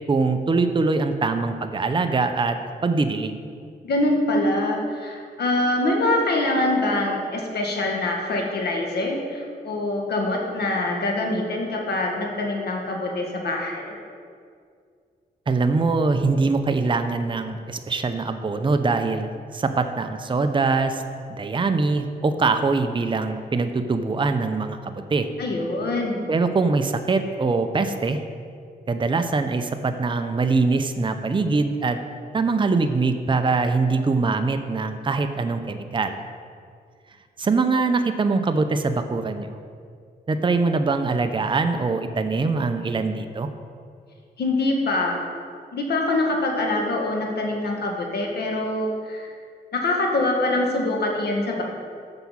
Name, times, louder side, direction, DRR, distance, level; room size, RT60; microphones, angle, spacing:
voice 1, 0.1-3.4 15.5-21.0 21.4-25.3 26.3-28.2 28.9-32.0 32.3-36.2 37.4-39.5 40.3-43.5, right 3 dB, 30° right, 8 dB, 0.6 m, -23 dB
voice 2, 3.8-13.9 25.4-26.2 44.4-45.2 45.7-49.3 49.7-51.6, left 2 dB, 75° left, 1 dB, 1.7 m, -24 dB
7.8 x 6.0 x 7.2 m, 2.2 s
cardioid pair, 75°, 17 cm